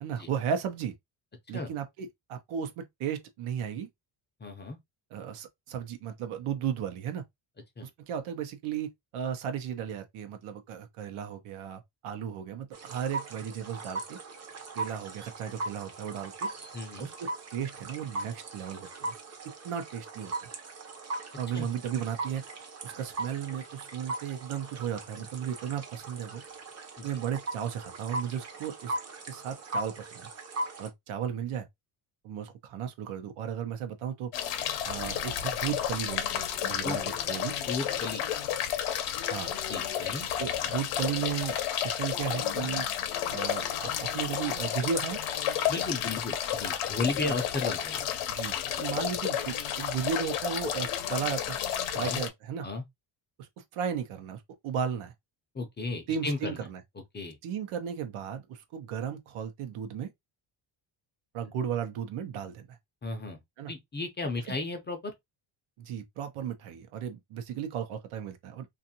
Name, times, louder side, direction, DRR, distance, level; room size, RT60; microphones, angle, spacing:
voice 1, 0.0-1.0 1.5-3.9 5.1-7.2 7.8-14.2 14.7-16.5 17.0-19.1 19.6-20.5 21.4-22.4 22.8-26.4 27.0-28.9 29.3-30.3 30.8-31.7 32.2-34.3 34.9-37.5 39.3-39.5 40.4-42.9 43.3-45.2 47.2-47.3 48.3-51.6 51.9-52.7 53.4-53.5 53.7-55.1 56.1-56.8 57.4-60.1 61.3-62.8 63.6-63.7 65.8-68.7, right 8 dB, 80° right, 0.8 m, -35 dB
voice 2, 4.4-4.8 7.8-7.9 16.7-17.1 21.5-21.7 27.0-27.1 36.8-37.0 37.7-38.2 39.7-40.3 45.7-48.0 52.0-52.2 52.6-52.8 55.5-56.6 57.1-57.4 63.0-63.4 63.7-65.1, left 3 dB, 20° left, 0.5 m, -34 dB
sound 1, 12.7-30.9, right 2 dB, 30° right, 0.7 m, -39 dB
sound 2, 34.3-52.3, left 10 dB, 90° left, 0.7 m, -31 dB
2.5 x 2.5 x 2.7 m
cardioid pair, 135°, 49 cm